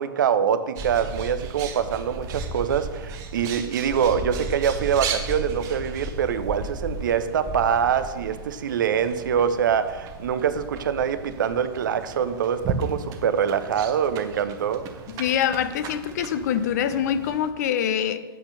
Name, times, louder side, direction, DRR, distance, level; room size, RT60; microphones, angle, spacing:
voice 1, 0.0-14.9, right 8 dB, 55° right, 11 dB, 0.6 m, -24 dB
Bird, 0.8-17.5, right 4 dB, 25° right, 0.9 m, -35 dB
voice 2, 15.2-18.2, left 9 dB, 45° left, 12 dB, 0.6 m, -24 dB
8.3 x 4.3 x 6.8 m, 1.2 s
figure-of-eight pair, 110°, 13 cm